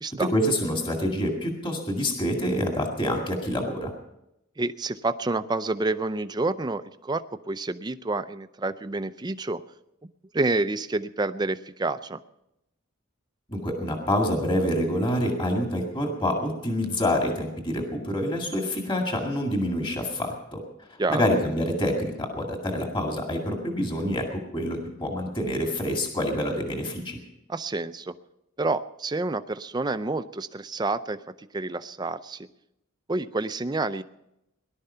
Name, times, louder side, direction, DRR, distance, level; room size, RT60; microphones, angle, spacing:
voice 1, 0.1-3.9 13.5-20.6 21.1-27.2, equal, 25° left, 1 dB, 2.0 m, -27 dB
voice 2, 4.6-9.6 10.3-12.2 21.0-21.2 27.5-28.1 28.6-31.2 31.5-32.5 33.1-34.0, right 2 dB, 20° right, 12 dB, 0.5 m, -28 dB
18.5 x 12.0 x 5.6 m, 0.87 s
head